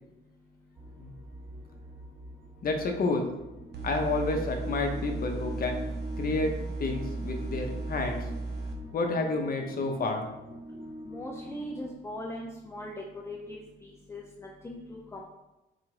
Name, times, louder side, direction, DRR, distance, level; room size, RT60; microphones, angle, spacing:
sound 1, 0.7-11.9, equal, 10° right, 0.9 m, -44 dB
voice 1, 2.6-3.3 3.8-5.8 6.2-6.5 6.8-8.2 8.9-10.3, left 3 dB, 50° left, 4 dB, 0.7 m, -29 dB
sound 2, 3.7-8.7, right 3 dB, 55° right, 0.7 m, -36 dB
voice 2, 11.0-12.9 13.2-15.2, left 1 dB, 15° left, -1 dB, 0.5 m, -40 dB
4.1 x 2.4 x 4.7 m, 0.99 s
cardioid pair, 90°, 20 cm